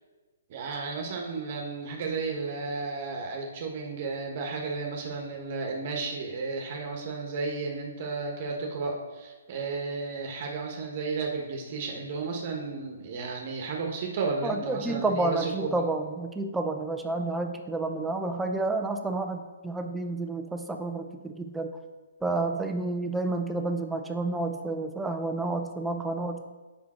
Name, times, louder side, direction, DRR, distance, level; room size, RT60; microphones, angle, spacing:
voice 1, 0.5-15.8, right 4 dB, 45° right, 1 dB, 1.2 m, -33 dB
voice 2, 14.4-21.7 22.2-26.5, right 2 dB, 5° right, 5 dB, 0.5 m, -30 dB
7.3 x 5.6 x 4.3 m, 1.3 s
hypercardioid pair, 140°, 0 cm